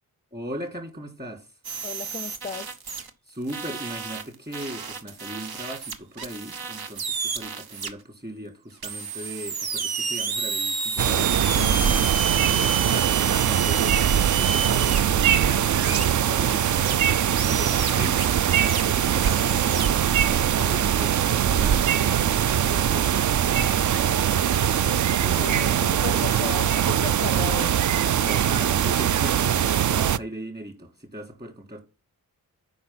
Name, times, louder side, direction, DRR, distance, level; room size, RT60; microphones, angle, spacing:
voice 1, 0.3-1.5 3.3-11.3 12.5-17.0 17.4-24.3 28.2-31.8, right 1 dB, 25° right, 3.4 m, -38 dB
sound 1, 1.6-3.1 3.5-7.9 8.8-15.0 15.8-16.9 17.4-18.8 19.2-19.9, right 6 dB, 80° right, 1.1 m, -31 dB
voice 2, 1.8-2.7 11.5-11.9 24.9-27.7, left 5 dB, 20° left, 0.5 m, -35 dB
sound 2, 11.0-30.2, right 9 dB, 55° right, 0.4 m, -22 dB
8.4 x 5.4 x 5.9 m
cardioid pair, 65°, 36 cm